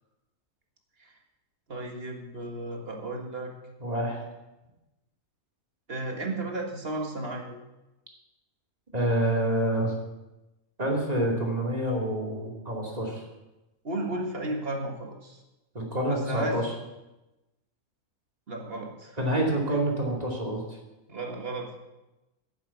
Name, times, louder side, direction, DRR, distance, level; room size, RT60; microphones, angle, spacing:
voice 1, 1.7-3.5 5.9-7.5 13.8-15.4 16.1-16.6 18.5-19.2 21.1-21.8, right 2 dB, 40° right, 2 dB, 1.9 m, -34 dB
voice 2, 3.8-4.2 8.9-9.9 10.8-13.2 15.7-16.7 19.2-20.6, right 1 dB, 25° right, -1 dB, 2.6 m, -27 dB
11.0 x 7.4 x 8.2 m, 1.0 s
omnidirectional pair, 1.6 m